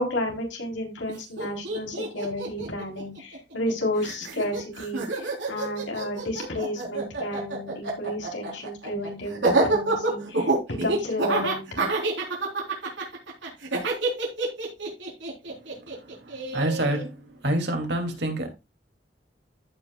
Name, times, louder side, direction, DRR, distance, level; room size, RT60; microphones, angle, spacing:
voice 1, 0.0-10.5 10.8-11.6, left 1 dB, 90° left, 3.9 m, -31 dB
Laughter, 1.1-1.2 1.4-3.7 4.0-17.0, right 2 dB, 85° right, 4.0 m, -27 dB
voice 2, 16.0-18.5, right 1 dB, 65° right, 2.7 m, -28 dB
15.0 x 6.1 x 2.4 m
head